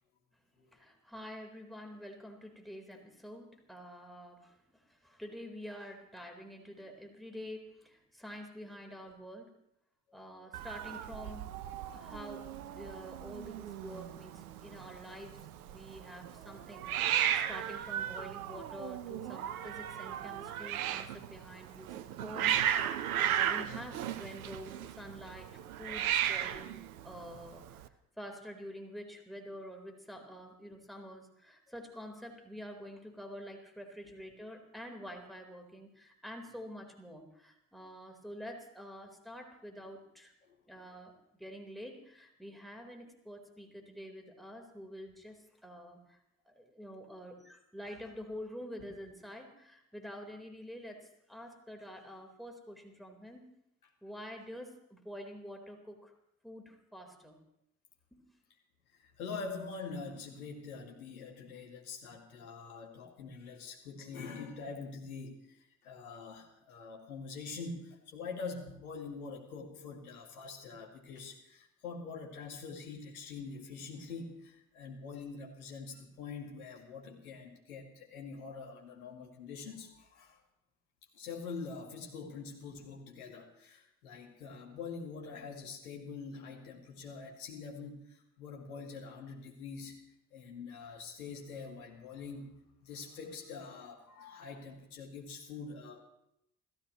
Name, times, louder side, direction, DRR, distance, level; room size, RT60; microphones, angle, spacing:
voice 1, 0.7-9.5 10.1-11.5 11.9-12.5 12.7-25.5 25.8-40.3 40.7-46.2 46.4-53.5 54.0-56.1 56.4-57.4 58.1-58.2, equal, ahead, 3 dB, 4.2 m, -47 dB
Hiss, 10.5-27.9, right 10 dB, 75° right, 0.9 m, -36 dB
voice 2, 59.0-80.4 81.1-90.0 90.3-92.5 92.8-96.0, left 4 dB, 80° left, 0 dB, 2.5 m, -45 dB
29.5 x 15.0 x 3.1 m, 0.77 s
figure-of-eight pair, 50°, 43 cm